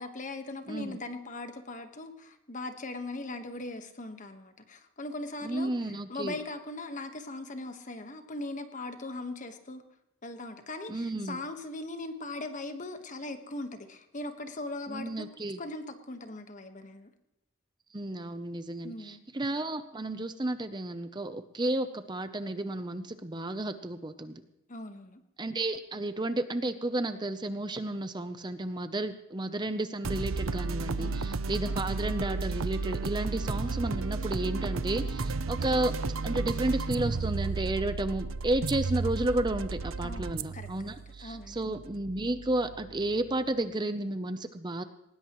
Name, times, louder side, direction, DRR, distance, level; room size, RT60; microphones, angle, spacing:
voice 1, 0.0-9.8 10.2-15.3 15.6-17.1 18.8-19.2 24.7-25.2 31.0-31.4 40.0-40.9 41.2-41.6, left 2 dB, 40° left, 7 dB, 1.4 m, -40 dB
voice 2, 0.7-1.0 5.4-6.3 10.9-11.4 14.9-15.6 17.9-24.4 25.4-35.9 36.2-44.8, right 1 dB, 20° right, 10 dB, 0.7 m, -32 dB
sound 1, 30.0-43.4, right 3 dB, 80° right, 0.7 m, -33 dB
19.5 x 19.0 x 3.1 m, 0.89 s
head